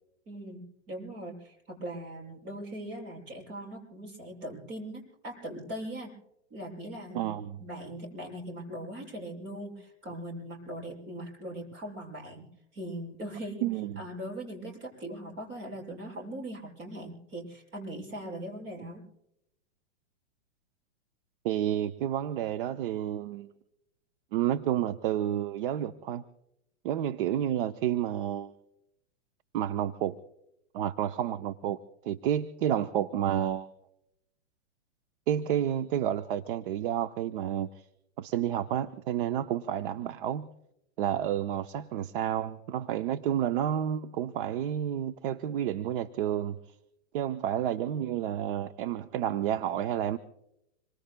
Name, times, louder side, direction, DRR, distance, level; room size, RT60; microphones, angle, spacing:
voice 1, 0.3-6.1 6.5-7.3 7.6-12.5 12.7-13.7 14.0-19.0, right 1 dB, 30° right, 0 dB, 7.2 m, -40 dB
voice 2, 7.1-7.6 13.6-14.0 21.4-23.5 24.3-26.2 26.8-28.5 29.5-30.2 30.7-33.7 35.3-37.9 38.2-40.5 41.0-46.8 47.1-50.2, right 10 dB, 50° right, 11 dB, 0.7 m, -30 dB
27.0 x 24.5 x 2.2 m, 0.84 s
hypercardioid pair, 150°, 36 cm